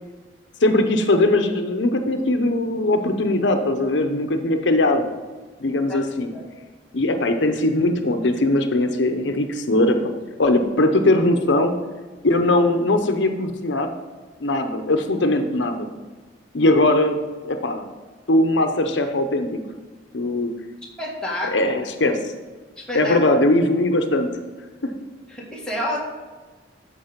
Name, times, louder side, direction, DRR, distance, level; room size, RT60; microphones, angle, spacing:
voice 1, 0.6-5.0 5.6-6.3 6.9-10.1 10.4-11.7 12.2-13.9 14.4-15.9 16.5-17.1 17.4-17.8 18.3-19.6 20.1-20.5 21.5-22.2 22.9-24.3 24.8-24.9, left 2 dB, 85° left, 6 dB, 0.8 m, -20 dB
voice 2, 21.0-21.7 22.8-23.2 25.3-26.0, left 1 dB, 5° left, -4 dB, 2.1 m, -29 dB
13.0 x 4.9 x 5.2 m, 1.3 s
head